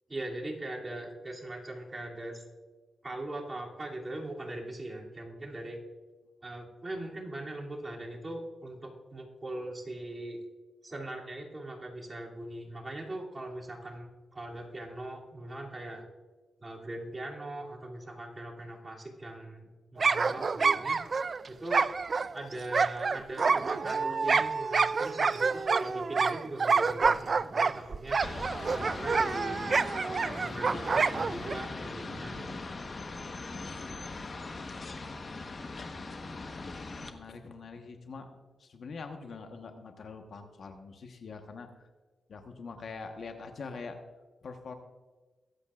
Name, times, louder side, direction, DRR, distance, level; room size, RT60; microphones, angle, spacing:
voice 1, 0.1-2.4 3.0-5.8 6.4-10.4 10.8-16.0 16.6-21.0 21.5-21.9 22.3-28.2 28.7-29.8 30.0-32.7, right 1 dB, 30° right, -2 dB, 2.8 m, -40 dB
sound 1, 20.0-31.5, right 4 dB, 50° right, 0.3 m, -28 dB
sound 2, 28.2-37.1, left 3 dB, 45° left, 1.2 m, -40 dB
voice 2, 36.8-41.8 42.3-44.0 44.4-44.7, left 4 dB, 65° left, 5 dB, 1.2 m, -44 dB
22.5 x 8.2 x 2.5 m, 1.3 s
cardioid pair, 65°, 0 cm